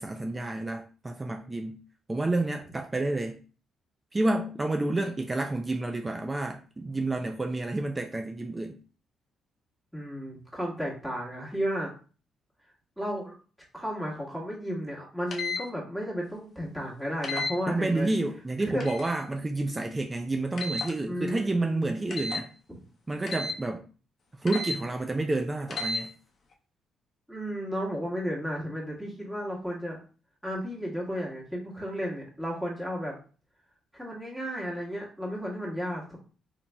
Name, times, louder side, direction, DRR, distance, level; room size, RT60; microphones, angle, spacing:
voice 1, 0.0-1.8 2.1-3.4 4.1-8.8 17.7-22.5 23.1-23.8 24.3-26.1, right 2 dB, 20° right, 0.3 m, -29 dB
voice 2, 9.9-11.9 13.0-13.3 13.7-18.1 18.7-18.8 21.1-22.0 27.3-30.0 30.4-33.1 33.9-36.2, equal, 5° right, 1.5 m, -33 dB
sound 1, 15.3-15.6 17.2-17.5 18.8-19.1 20.6-20.9 22.1-22.4 23.3-23.6 24.5-24.8 25.7-26.0, left 3 dB, 50° left, 0.7 m, -32 dB
4.0 x 2.8 x 2.3 m
cardioid pair, 90°, 0 cm